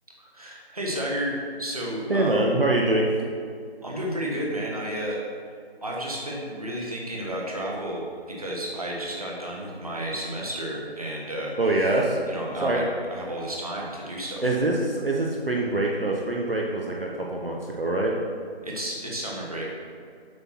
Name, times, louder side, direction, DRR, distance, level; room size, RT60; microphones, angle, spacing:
voice 1, 0.2-1.3 1.6-2.5 3.8-5.2 5.8-8.0 8.3-11.5 11.8-11.9 12.3-12.8 13.1-14.5 18.6-19.7, right 1 dB, 35° right, -3 dB, 1.3 m, -32 dB
voice 2, 2.1-3.1 11.6-12.2 12.6-12.8 14.4-18.2, right 2 dB, 60° right, -1 dB, 1.0 m, -24 dB
7.8 x 6.0 x 4.4 m, 2.2 s
figure-of-eight pair, 175°, 32 cm